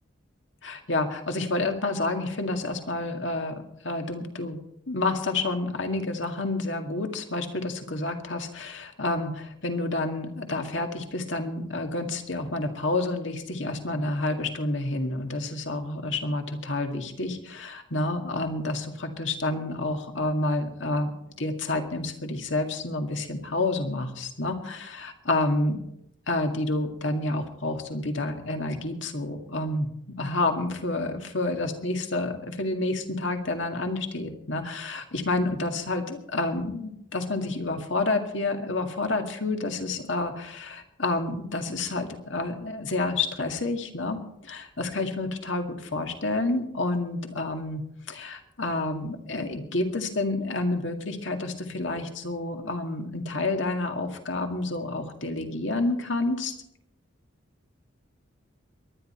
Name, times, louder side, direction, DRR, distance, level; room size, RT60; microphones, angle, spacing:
voice 1, 0.6-4.6 4.9-21.1 21.4-25.8 26.3-29.9 30.2-56.5, left 2 dB, 75° left, 5 dB, 2.0 m, -29 dB
23.0 x 10.5 x 4.4 m, 0.77 s
head